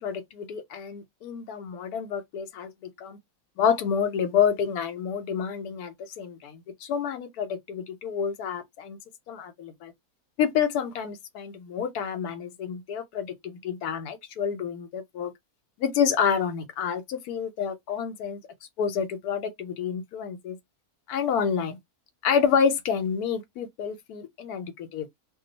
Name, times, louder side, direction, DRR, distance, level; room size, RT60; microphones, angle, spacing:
voice 1, 0.0-2.7 3.0-3.2 3.6-9.0 9.3-9.9 10.4-15.3 15.8-18.4 18.8-20.6 21.1-21.8 22.2-25.1, left 7 dB, 85° left, 1.2 m, -28 dB
2.6 x 2.3 x 3.8 m
omnidirectional pair, 1.6 m